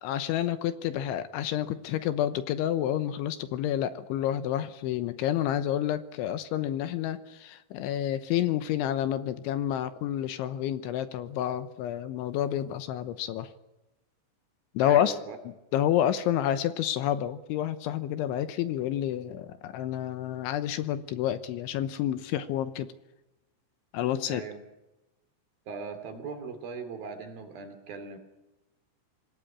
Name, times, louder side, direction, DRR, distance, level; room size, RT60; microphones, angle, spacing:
voice 1, 0.0-13.5 14.7-15.2 15.4-22.9 23.9-24.4, left 11 dB, 75° left, 11 dB, 3.2 m, -29 dB
voice 2, 14.8-15.4 24.3-24.6 25.7-28.2, right 5 dB, 50° right, 7 dB, 4.1 m, -39 dB
26.0 x 18.0 x 8.5 m, 0.98 s
omnidirectional pair, 5.8 m